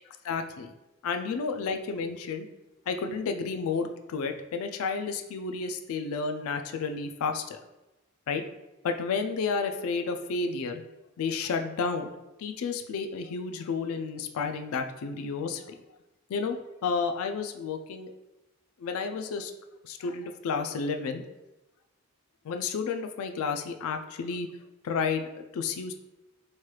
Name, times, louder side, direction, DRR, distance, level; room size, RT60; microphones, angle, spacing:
voice 1, 0.2-0.7 1.0-2.5 2.9-7.6 8.3-8.4 8.8-10.8 11.2-12.1 12.4-15.6 16.3-18.1 18.8-19.5 19.8-21.3 22.4-24.5 24.8-25.9, left 5 dB, 75° left, 6 dB, 0.3 m, -31 dB
3.1 x 3.0 x 2.3 m, 1.0 s
head